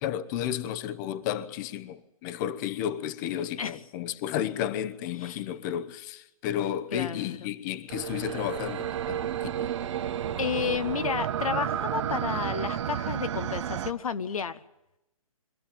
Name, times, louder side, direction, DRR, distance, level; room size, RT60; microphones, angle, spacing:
voice 1, 0.0-9.7, left 10 dB, 35° left, 0.9 m, -32 dB
voice 2, 6.9-7.5 10.4-14.6, left 6 dB, 75° left, 0.9 m, -31 dB
sound 1, 7.9-13.9, right 10 dB, 55° right, 1.1 m, -31 dB
24.0 x 14.5 x 8.9 m
hypercardioid pair, 130°, 18 cm